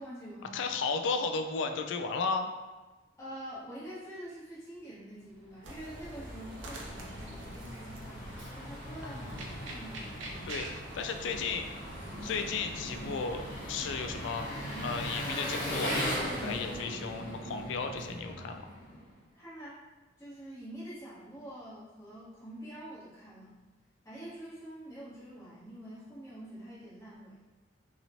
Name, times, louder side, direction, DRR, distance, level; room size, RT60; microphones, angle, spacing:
voice 1, 0.0-0.6 3.2-10.5 19.3-19.8 20.2-23.6 24.0-27.4, right 1 dB, 15° left, -11 dB, 1.2 m, -46 dB
voice 2, 0.5-2.5 9.0-9.5 10.4-11.7 12.2-14.5 14.8-18.7, left 4 dB, 65° left, 6 dB, 0.3 m, -34 dB
Engine, 5.6-19.1, equal, 45° left, 1.0 m, -39 dB
sound 1, 5.6-16.9, right 1 dB, 80° right, 0.5 m, -46 dB
2.9 x 2.8 x 2.7 m, 1.2 s
head